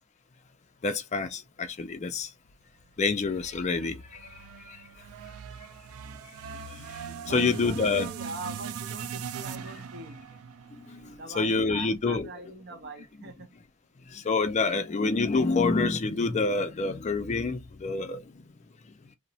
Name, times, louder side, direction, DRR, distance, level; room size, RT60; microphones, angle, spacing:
voice 1, 0.8-2.3 3.0-4.0 6.7-6.9 7.3-8.1 10.8-12.3 14.1-18.2, left 4 dB, 30° left, 0.3 m, -27 dB
sound 1, 3.2-11.6, right 7 dB, 75° right, 0.3 m, -40 dB
voice 2, 7.2-10.3 11.1-13.5, right 2 dB, 50° right, 0.7 m, -42 dB
2.8 x 2.0 x 2.6 m
head